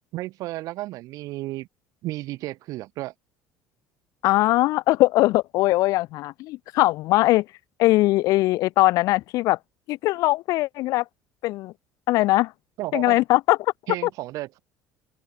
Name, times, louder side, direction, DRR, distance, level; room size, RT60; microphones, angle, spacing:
voice 1, 0.1-1.7 2.0-3.1 12.8-13.2 13.9-14.6, right 17 dB, 60° right, 0.7 m, -33 dB
voice 2, 4.2-7.5 7.8-9.6 9.9-11.0 11.4-11.7 12.1-12.5 12.9-13.7, left 18 dB, 60° left, 0.3 m, -21 dB
open air
cardioid pair, 130°, 7 cm